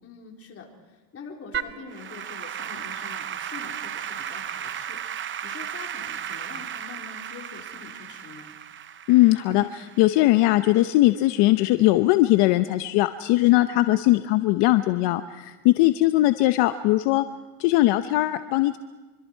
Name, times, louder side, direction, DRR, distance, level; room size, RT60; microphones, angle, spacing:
voice 1, 0.0-5.0 5.4-8.5 13.4-13.6, left 5 dB, 30° left, 0 dB, 4.1 m, -44 dB
Applause / Keyboard (musical), 1.5-10.9, right 9 dB, 25° right, 0.7 m, -35 dB
voice 2, 9.1-17.2 17.6-18.8, left 17 dB, 70° left, 10 dB, 0.9 m, -20 dB
25.5 x 25.0 x 4.6 m, 1.2 s
cardioid pair, 130°, 44 cm